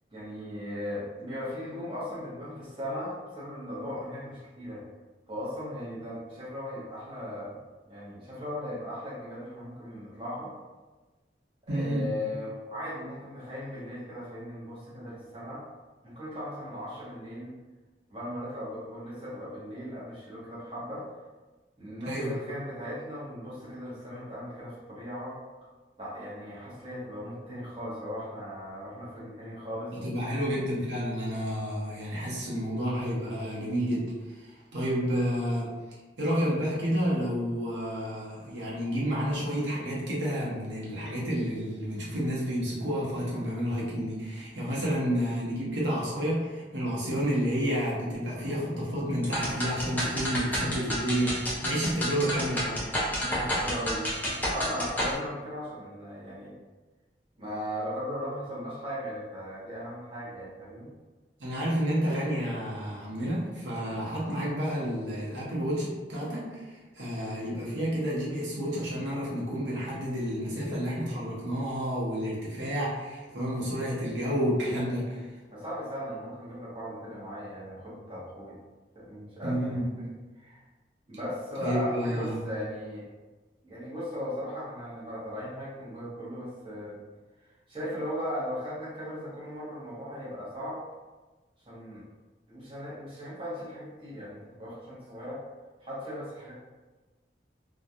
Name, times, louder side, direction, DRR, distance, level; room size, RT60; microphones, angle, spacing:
voice 1, 0.1-4.8 5.3-7.6 7.9-10.5 11.7-15.6 16.0-17.6 18.1-21.0 21.8-25.4 26.0-29.9 44.5-44.7 53.2-54.1 54.5-56.5 57.4-60.9 75.5-78.6 78.9-80.1 80.4-80.6 81.1-83.1 83.6-87.0 87.7-90.8 91.6-92.0 92.5-95.4 95.8-96.5, equal, 30° right, -9 dB, 0.8 m, -37 dB
voice 2, 11.7-12.0 22.1-22.3 30.0-35.7 36.2-52.9 61.4-75.3 79.4-79.9 81.6-82.4, equal, 85° right, -6 dB, 0.8 m, -30 dB
sound 1, 49.2-55.2, equal, 10° left, 0.5 m, -30 dB
2.3 x 2.2 x 2.7 m, 1.2 s
head